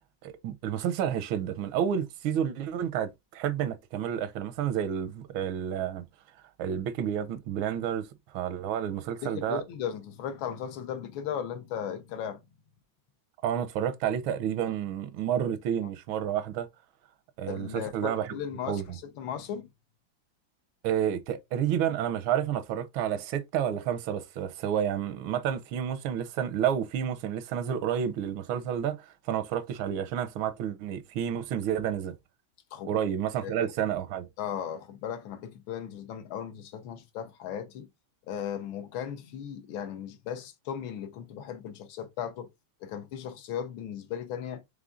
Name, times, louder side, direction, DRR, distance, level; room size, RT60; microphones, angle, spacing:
voice 1, 0.2-6.0 6.6-9.6 13.4-16.7 17.4-18.4 18.7-19.0 20.8-32.1 32.8-34.3, right 9 dB, 85° right, 1.4 m, -30 dB
voice 2, 9.2-12.5 17.5-19.7 32.7-32.9 33.4-33.5 34.4-37.9 38.3-42.5 42.8-44.6, left 8 dB, 80° left, 1.6 m, -36 dB
4.9 x 3.5 x 2.4 m
omnidirectional pair, 2.2 m